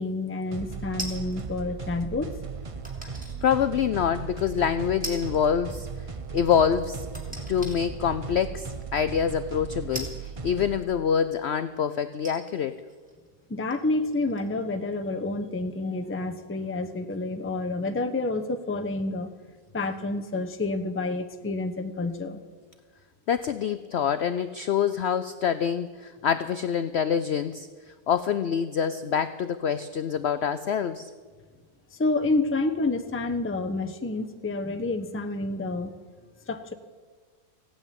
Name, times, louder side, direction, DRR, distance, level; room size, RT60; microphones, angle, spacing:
voice 1, 0.0-2.3 13.5-19.3 19.7-22.4 32.0-35.9 36.5-36.7, left 2 dB, 15° left, 7 dB, 0.5 m, -29 dB
sound 1, 0.5-10.8, right 5 dB, 45° right, 0.4 m, -37 dB
sound 2, 1.0-1.5 2.8-3.4 3.9-4.0 5.0-5.5 5.8-5.9 7.1-7.8 8.6-8.7 9.9-11.0 11.7-11.8 12.2-14.6 14.9-15.0, equal, 5° right, 2.7 m, -40 dB
voice 2, 3.4-5.9 6.3-12.8 23.3-27.7 28.1-31.1, left 8 dB, 70° left, 12 dB, 0.6 m, -26 dB
16.0 x 8.9 x 9.2 m, 1.5 s
omnidirectional pair, 1.7 m